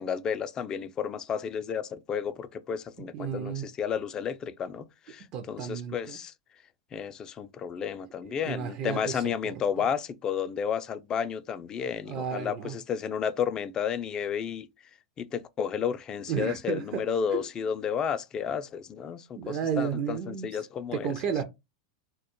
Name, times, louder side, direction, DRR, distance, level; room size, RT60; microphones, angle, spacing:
voice 1, 0.0-6.3 6.9-14.7 15.2-21.1, left 7 dB, 30° left, 0.3 m, -32 dB
voice 2, 3.1-3.6 5.3-6.2 8.2-9.9 12.1-12.8 16.3-17.5 19.4-20.5 20.9-21.4, right 7 dB, 45° right, 0.5 m, -33 dB
2.2 x 2.0 x 2.9 m
hypercardioid pair, 105°, 2 cm